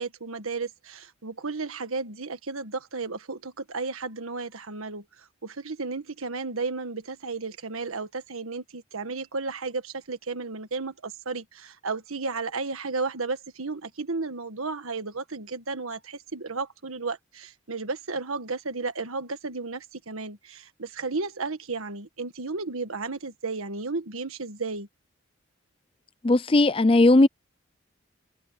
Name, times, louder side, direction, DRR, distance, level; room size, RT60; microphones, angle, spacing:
voice 1, 0.0-5.0 5.4-24.9, right 3 dB, 90° right, 1.6 m, -33 dB
voice 2, 26.2-27.3, left 2 dB, 25° left, 0.5 m, -17 dB
head